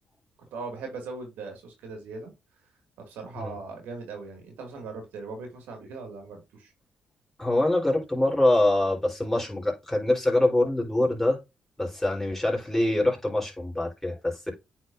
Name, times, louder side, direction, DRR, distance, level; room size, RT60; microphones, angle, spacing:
voice 1, 0.5-2.3 3.0-6.7, right 4 dB, 85° right, 2.0 m, -39 dB
voice 2, 7.4-11.4 11.8-14.5, left 1 dB, 10° left, 3.7 m, -24 dB
8.8 x 4.4 x 2.6 m
supercardioid pair, 60°, 3 cm